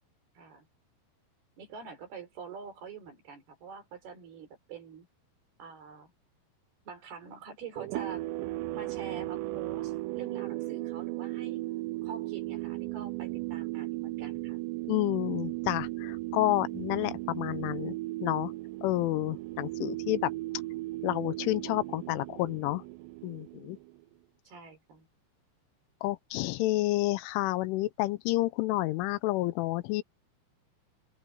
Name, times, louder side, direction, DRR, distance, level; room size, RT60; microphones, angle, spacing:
voice 1, 0.4-0.7 1.6-5.1 5.6-6.1 6.9-8.2 8.7-14.6 24.5-25.1, right 5 dB, 55° right, 6.0 m, -46 dB
sound 1, 7.8-24.0, right 19 dB, 85° right, 2.5 m, -36 dB
voice 2, 14.9-18.0 18.2-18.5 18.8-20.3 21.0-22.8 23.2-23.8 26.0-30.0, left 18 dB, 85° left, 3.2 m, -30 dB
open air
omnidirectional pair, 5.6 m